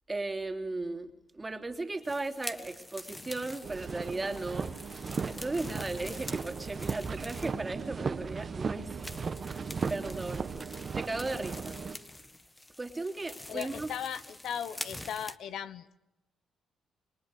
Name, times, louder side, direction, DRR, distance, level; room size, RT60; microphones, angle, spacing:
voice 1, 0.1-4.7 5.3-9.1 9.5-10.5 10.9-11.8 12.8-13.9, right 2 dB, 20° right, 4 dB, 3.1 m, -36 dB
sound 1, 2.0-7.7 8.3-8.4 9.0-15.4, left 1 dB, 15° left, 1.6 m, -46 dB
sound 2, 3.6-12.0, right 5 dB, 40° right, 1.3 m, -36 dB
voice 2, 13.5-16.0, left 9 dB, 75° left, 13 dB, 1.1 m, -37 dB
29.0 x 22.5 x 6.7 m, 0.91 s
cardioid pair, 90°, 0 cm